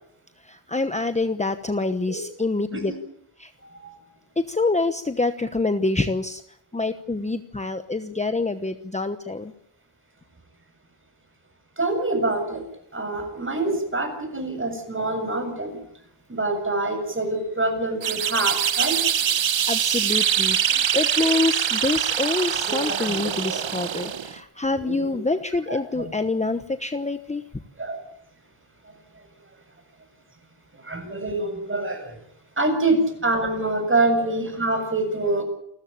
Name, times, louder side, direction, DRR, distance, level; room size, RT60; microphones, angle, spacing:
voice 1, 0.4-2.9 3.4-3.5 4.4-6.4 6.7-9.5 19.7-27.4, left 3 dB, 15° left, 9 dB, 1.1 m, -26 dB
voice 2, 11.8-12.6 12.9-15.8 16.3-19.0 22.7-23.6 24.1-24.2 24.8-25.2 25.7-26.1 27.8-28.0 30.8-32.2 32.6-35.4, right 2 dB, 25° right, 5 dB, 7.5 m, -26 dB
sound 1, 18.0-24.4, right 9 dB, 80° right, 1.4 m, -24 dB
28.5 x 14.0 x 8.8 m, 0.73 s
wide cardioid pair, 130°, 45 cm